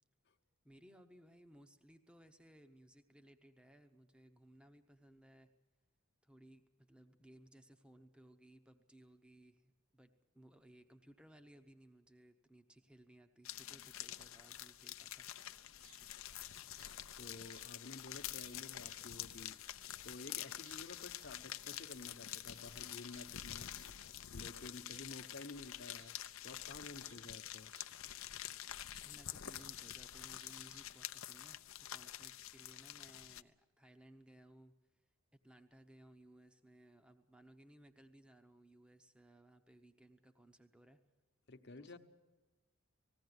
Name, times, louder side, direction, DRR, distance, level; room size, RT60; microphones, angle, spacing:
voice 1, 0.6-5.5 6.2-15.3 29.0-34.7 35.3-41.0 41.8-42.0, right 1 dB, 5° right, 8 dB, 0.9 m, -62 dB
sound 1, 13.4-33.4, left 12 dB, 70° left, 0.6 m, -48 dB
sound 2, 15.3-31.0, right 5 dB, 70° right, 1.4 m, -69 dB
voice 2, 17.2-19.6 20.0-23.7 24.3-26.2 26.4-27.7 41.5-42.0, left 2 dB, 50° left, 7 dB, 1.1 m, -52 dB
19.5 x 16.0 x 9.7 m, 1.1 s
head